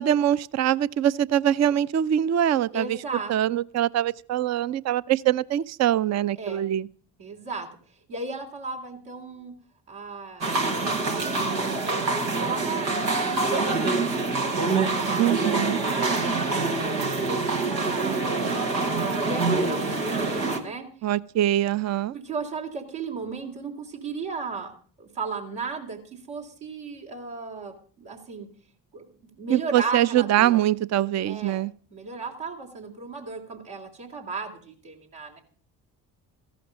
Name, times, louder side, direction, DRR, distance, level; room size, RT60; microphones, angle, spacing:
voice 1, 0.0-3.0 3.3-6.9 15.2-15.8 21.0-22.1 29.5-31.7, right 11 dB, 35° right, 0.6 m, -23 dB
voice 2, 2.7-3.3 6.4-6.6 7.2-7.7 8.1-9.5 9.9-12.1 12.4-12.9 13.2-18.2 18.8-20.9 22.1-24.7 25.0-28.5 28.9-29.0 29.3-30.6 31.2-31.6 31.9-35.4, right 4 dB, 70° right, 3.2 m, -35 dB
sound 1, 10.4-20.6, right 3 dB, 90° right, 1.3 m, -25 dB
15.0 x 11.5 x 5.1 m
figure-of-eight pair, 45°, 50 cm